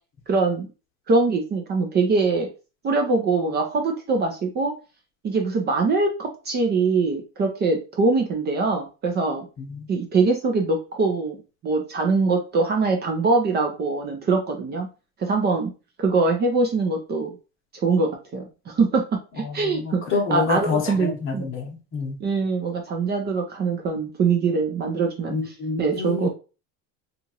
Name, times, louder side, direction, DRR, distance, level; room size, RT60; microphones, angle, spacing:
voice 1, 0.3-0.7 1.1-2.5 2.8-4.8 5.2-9.5 9.9-11.4 11.6-14.9 15.2-15.7 16.0-17.3 17.8-19.1 19.3-21.5 22.2-26.3, right 3 dB, 30° right, 2 dB, 0.5 m, -23 dB
voice 2, 9.6-9.9 19.4-22.2 25.3-26.3, left 4 dB, 40° left, 2 dB, 0.8 m, -28 dB
2.8 x 2.5 x 2.8 m, 0.32 s
cardioid pair, 150°, 34 cm